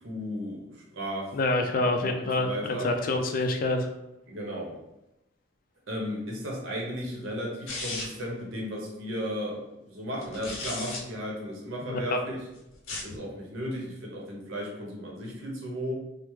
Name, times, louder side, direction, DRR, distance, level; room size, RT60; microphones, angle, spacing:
voice 1, 0.0-1.4 2.0-2.9 4.3-4.7 5.9-12.4 13.0-15.9, equal, 85° right, -2 dB, 0.9 m, -35 dB
voice 2, 1.3-3.9 11.9-12.2, left 2 dB, 45° left, 5 dB, 0.3 m, -27 dB
sound 1, 7.7-8.3 10.2-11.0 12.7-13.2, left 2 dB, 85° left, 0.6 m, -35 dB
3.3 x 2.0 x 3.1 m, 0.90 s
head